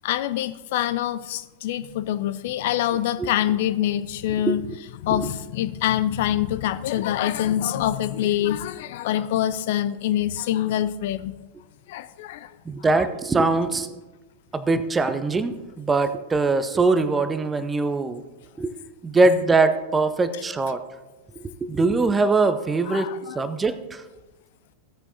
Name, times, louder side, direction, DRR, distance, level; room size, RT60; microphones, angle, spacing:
voice 1, 0.0-4.7 5.0-11.4 11.9-12.5 22.9-23.4, left 11 dB, 55° left, 15 dB, 0.4 m, -25 dB
voice 2, 12.7-13.9 14.5-18.2 18.6-18.7 19.0-20.8 21.6-24.0, right 3 dB, 15° right, 12 dB, 0.6 m, -22 dB
16.0 x 8.8 x 2.7 m, 1.2 s
figure-of-eight pair, 90°, 0 cm